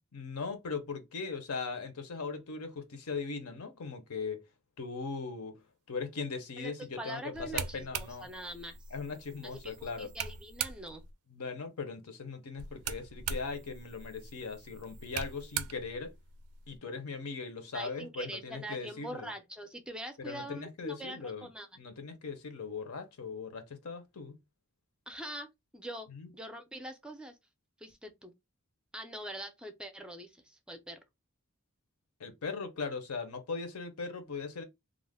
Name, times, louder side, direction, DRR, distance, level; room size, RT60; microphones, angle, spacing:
voice 1, 0.1-4.4 4.8-5.6 5.9-8.3 8.9-10.1 11.3-16.1 16.7-19.3 20.2-21.5 21.8-24.4 26.1-26.3 32.2-34.6, left 4 dB, 80° left, 0.7 m, -39 dB
voice 2, 6.6-8.8 9.4-11.0 17.7-21.7 25.1-27.4 27.8-28.3 28.9-31.0, right 1 dB, 5° right, 0.3 m, -43 dB
sound 1, 7.3-11.1 12.6-16.8, right 7 dB, 90° right, 0.4 m, -41 dB
2.4 x 2.1 x 3.3 m
head